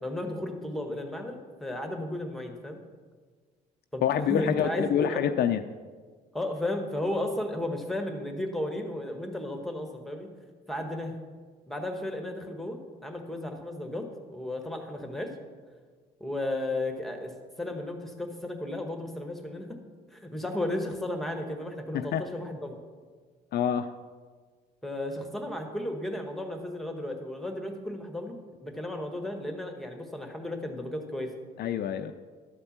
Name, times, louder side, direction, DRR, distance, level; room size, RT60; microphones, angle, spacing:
voice 1, 0.0-2.8 3.9-5.2 6.3-10.3 10.7-11.2 11.7-15.4 16.2-19.8 20.1-22.8 24.8-31.3, left 1 dB, ahead, 4 dB, 1.4 m, -34 dB
voice 2, 4.0-5.6 21.9-22.2 23.5-23.9 31.6-32.1, left 9 dB, 60° left, 7 dB, 0.5 m, -26 dB
11.5 x 4.4 x 7.2 m, 1.5 s
supercardioid pair, 80°, 19 cm